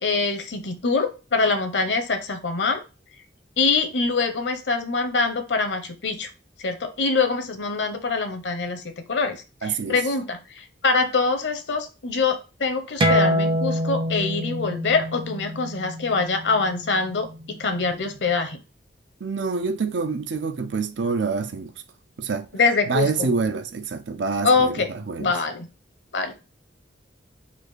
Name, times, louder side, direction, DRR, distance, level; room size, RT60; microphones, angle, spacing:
voice 1, 0.0-2.8 3.6-6.3 6.6-8.8 9.1-18.6 22.5-23.3 24.4-24.9 25.2-25.7 26.1-26.3, left 4 dB, 65° left, 0.9 m, -24 dB
voice 2, 9.6-10.0 19.2-21.7 22.2-22.5 22.9-25.3, right 4 dB, 75° right, 0.6 m, -26 dB
sound 1, 13.0-18.2, equal, 30° right, 0.7 m, -26 dB
4.3 x 2.6 x 4.5 m
head